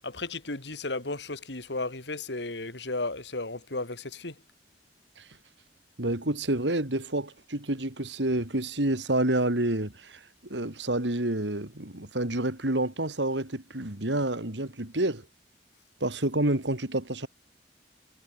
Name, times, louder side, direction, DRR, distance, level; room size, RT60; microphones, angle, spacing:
voice 1, 0.0-4.3, left 2 dB, 80° left, 3.0 m, -34 dB
voice 2, 6.0-10.2 10.5-15.2 16.0-17.3, right 1 dB, 90° right, 3.3 m, -28 dB
head